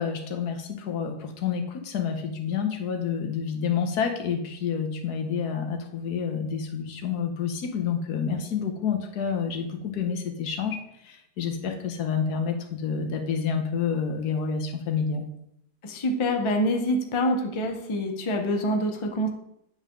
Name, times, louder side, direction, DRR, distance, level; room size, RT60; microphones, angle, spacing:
voice 1, 0.0-15.3, left 6 dB, 70° left, 4 dB, 1.5 m, -29 dB
voice 2, 15.8-19.3, equal, 35° left, 4 dB, 0.4 m, -26 dB
8.0 x 5.5 x 3.7 m, 0.76 s
omnidirectional pair, 1.8 m